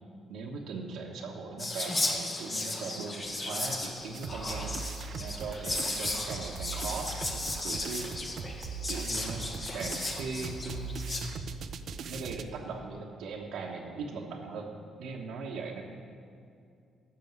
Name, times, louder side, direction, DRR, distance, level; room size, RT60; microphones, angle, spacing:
voice 1, 0.3-4.8 5.2-7.3 7.6-8.1 8.9-11.3 11.9-14.7 15.0-15.9, right 4 dB, 85° right, -2 dB, 1.2 m, -39 dB
Whispering, 1.6-11.2, left 2 dB, 30° left, 1.7 m, -35 dB
sound 1, 4.1-12.4, right 5 dB, 65° right, 0.6 m, -40 dB
11.0 x 6.8 x 9.4 m, 2.4 s
cardioid pair, 90°, 0 cm